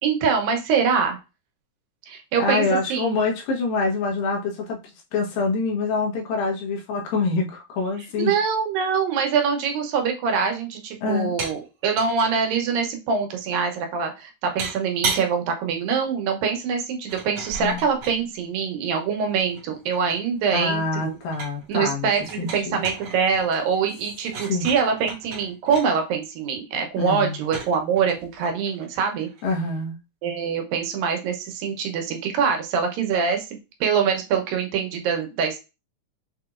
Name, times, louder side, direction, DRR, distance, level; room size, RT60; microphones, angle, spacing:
voice 1, 0.0-1.2 2.1-3.2 8.2-21.2 21.7-29.3 30.2-35.6, right 6 dB, 90° right, 4 dB, 2.6 m, -24 dB
voice 2, 2.4-4.8 5.1-8.3 11.0-11.3 17.6-17.8 20.5-22.1 22.4-22.8 24.5-24.7 27.0-27.4 29.4-30.0, left 3 dB, 90° left, 1 dB, 2.8 m, -25 dB
sound 1, 11.4-11.6 11.9-12.3 14.6-15.3 17.1-18.2 19.2-20.4 20.7-21.7 22.2-25.9 27.4-29.4, right 4 dB, 60° right, 1.3 m, -34 dB
6.5 x 3.0 x 2.4 m, 0.28 s
omnidirectional pair, 3.9 m